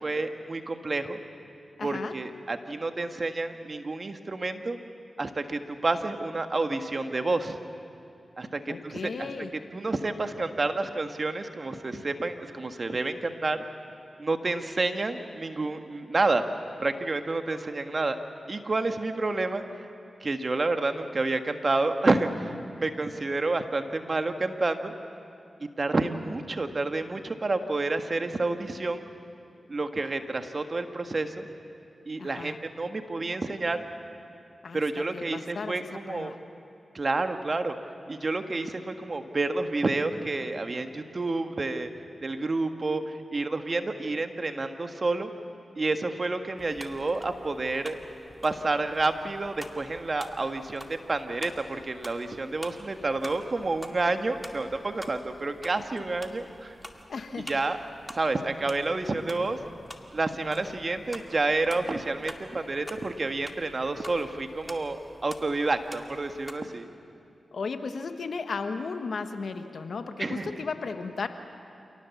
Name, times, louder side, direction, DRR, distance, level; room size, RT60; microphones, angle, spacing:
voice 1, 0.0-1.2 1.8-4.8 5.2-7.6 8.4-9.3 9.7-13.6 14.2-16.4 16.8-18.2 18.5-19.6 20.2-24.9 25.8-29.1 29.7-31.5 32.0-33.8 34.7-36.3 36.9-37.8 38.1-41.9 42.2-45.3 45.7-48.0 48.4-56.8 57.5-57.8 58.1-59.6 60.1-66.9 70.2-70.6, right 3 dB, 50° right, 6 dB, 1.7 m, -29 dB
voice 2, 1.8-2.2 8.7-9.5 32.2-32.5 34.6-36.4 57.1-57.6 67.5-71.3, left 4 dB, 75° left, 8 dB, 1.4 m, -35 dB
sound 1, 46.6-66.5, equal, 5° left, 2.3 m, -48 dB
27.5 x 18.5 x 7.2 m, 2.6 s
cardioid pair, 40°, 0 cm